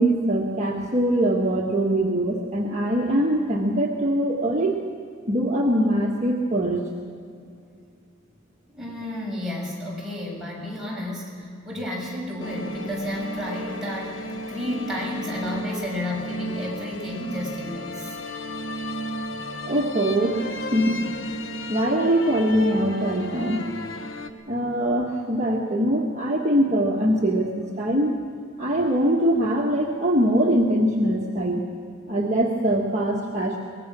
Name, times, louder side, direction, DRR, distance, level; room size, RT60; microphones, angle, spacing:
voice 1, 0.0-4.8 5.3-6.8 19.7-21.1 21.7-23.7 24.5-28.2 28.6-31.6 32.1-33.6, right 1 dB, 35° right, -2 dB, 1.5 m, -22 dB
voice 2, 8.7-18.2, left 1 dB, ahead, -5 dB, 6.9 m, -32 dB
sound 1, 12.4-24.3, left 1 dB, 75° left, 1.2 m, -33 dB
23.5 x 20.0 x 6.2 m, 2.4 s
head